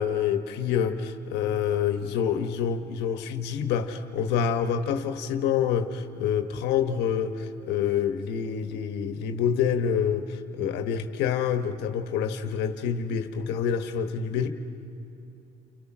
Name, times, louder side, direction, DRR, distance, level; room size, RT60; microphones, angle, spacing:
voice 1, 0.0-14.5, left 7 dB, 85° left, 7 dB, 1.4 m, -27 dB
29.5 x 26.5 x 6.2 m, 2.9 s
cardioid pair, 110°, 17 cm